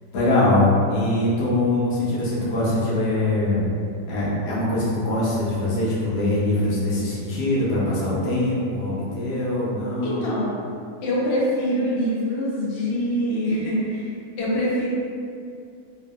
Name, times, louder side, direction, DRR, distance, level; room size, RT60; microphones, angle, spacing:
voice 1, 0.1-3.7 4.1-10.2, left 1 dB, 85° left, -7 dB, 1.3 m, -22 dB
voice 2, 10.0-10.5 11.0-14.9, equal, 60° left, -6 dB, 0.7 m, -24 dB
2.7 x 2.6 x 2.3 m, 2.3 s
omnidirectional pair, 1.7 m